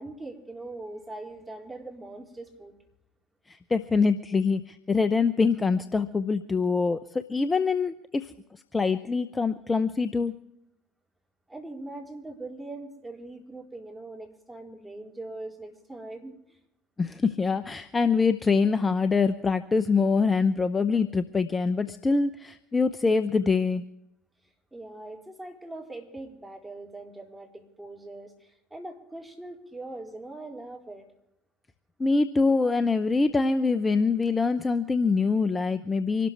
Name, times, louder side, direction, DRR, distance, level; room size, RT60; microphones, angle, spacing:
voice 1, 0.0-2.8 11.5-16.6 24.7-31.1, right 2 dB, 5° right, 0 dB, 4.2 m, -41 dB
voice 2, 3.5-10.3 17.0-23.8 32.0-36.3, left 4 dB, 20° left, 10 dB, 0.8 m, -24 dB
25.5 x 13.0 x 3.4 m, 0.82 s
hypercardioid pair, 70°, 0 cm